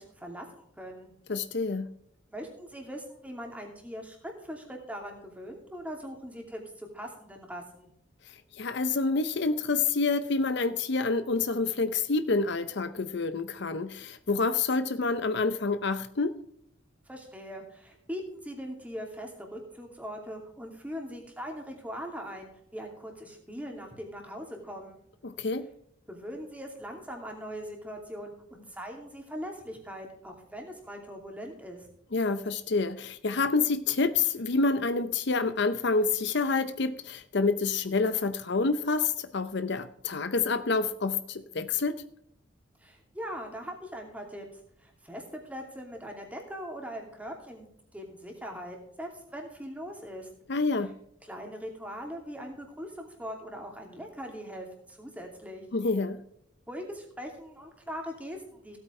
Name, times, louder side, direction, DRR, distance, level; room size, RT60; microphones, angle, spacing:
voice 1, 0.0-1.1 2.3-7.9 17.1-25.0 26.1-31.9 42.8-44.5 44.8-50.3 51.3-55.6 56.7-58.8, equal, 10° right, 2.6 m, -41 dB
voice 2, 1.3-1.9 8.5-16.4 25.2-25.7 32.1-42.0 50.5-50.9 55.7-56.2, left 4 dB, 60° left, 0.7 m, -28 dB
16.5 x 8.6 x 3.2 m
head